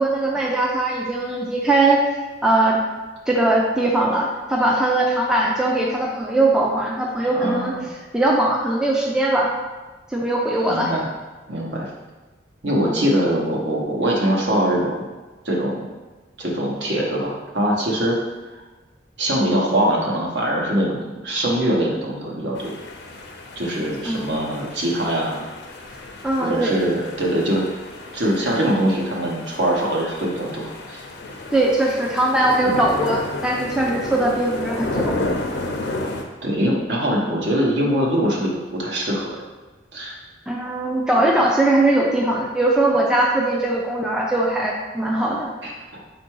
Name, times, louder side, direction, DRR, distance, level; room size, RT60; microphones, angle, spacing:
voice 1, 0.0-2.0 2.4-2.8 3.3-7.8 8.1-9.5 10.1-10.9 12.9-13.1 24.1-24.3 26.2-26.8 31.5-35.2 40.5-45.5, right 2 dB, 5° right, -2 dB, 0.3 m, -20 dB
voice 2, 7.2-7.9 10.7-11.1 11.5-11.9 12.6-15.1 15.4-15.8 16.4-18.2 19.2-22.7 23.6-25.5 26.4-27.7 28.1-31.0 32.7-32.8 36.4-39.3 39.9-40.2 45.6-46.0, right 1 dB, 65° right, -3 dB, 1.0 m, -22 dB
sound 1, 22.6-36.2, left 2 dB, 60° left, 0.5 m, -32 dB
4.5 x 2.5 x 4.5 m, 1.2 s
head